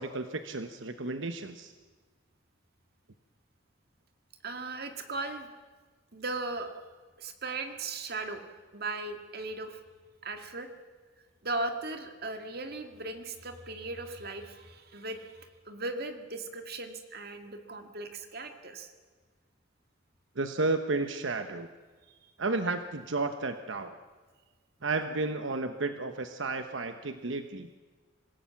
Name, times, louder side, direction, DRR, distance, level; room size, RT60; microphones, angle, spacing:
voice 1, 0.0-1.7 20.4-21.7 22.4-24.0 24.8-27.7, right 3 dB, 85° right, 8 dB, 1.0 m, -32 dB
voice 2, 4.4-5.5 6.1-6.7 7.2-8.4 8.7-9.8 10.2-10.7 11.4-18.9 22.6-22.7, right 2 dB, 55° right, 6 dB, 2.1 m, -37 dB
26.0 x 16.5 x 7.2 m, 1.4 s
head